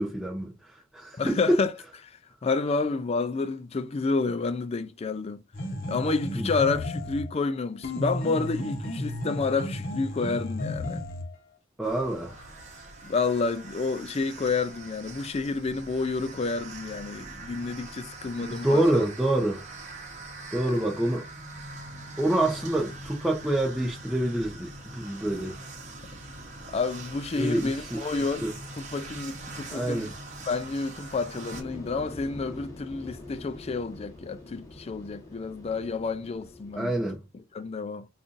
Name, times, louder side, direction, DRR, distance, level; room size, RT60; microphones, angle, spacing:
voice 1, 0.0-1.4 6.4-6.5 11.8-12.4 18.4-19.9 20.5-21.2 22.2-25.6 27.4-28.0 28.4-28.5 29.7-30.1 36.8-37.2, right 1 dB, 5° right, 0.7 m, -27 dB
voice 2, 1.1-1.7 2.0-5.4 5.9-11.0 13.0-19.0 20.7-20.8 26.7-28.5 28.7-30.1 30.4-36.9 37.3-38.1, left 4 dB, 30° left, 0.4 m, -29 dB
sound 1, 5.5-7.3 7.8-11.3, left 1 dB, 45° left, 0.9 m, -33 dB
sound 2, 11.8-31.6, right 2 dB, 40° right, 1.0 m, -43 dB
sound 3, 31.5-37.2, left 2 dB, 15° left, 1.2 m, -45 dB
5.3 x 2.5 x 2.5 m
head